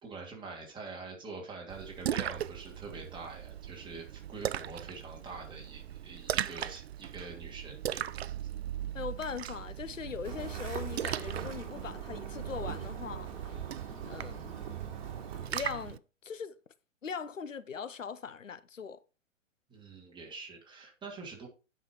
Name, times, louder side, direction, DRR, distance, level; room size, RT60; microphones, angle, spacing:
voice 1, 0.0-8.0 10.0-10.1 19.7-21.5, right 3 dB, 10° right, 2.7 m, -45 dB
Splash splatter, 1.7-16.0, right 11 dB, 55° right, 0.5 m, -38 dB
voice 2, 8.9-13.3 14.1-14.6 15.5-16.6 17.0-19.0, left 6 dB, 75° left, 0.8 m, -40 dB
sound 1, 10.2-15.5, right 6 dB, 40° right, 2.5 m, -43 dB
9.1 x 5.8 x 4.5 m
figure-of-eight pair, 115°, 38 cm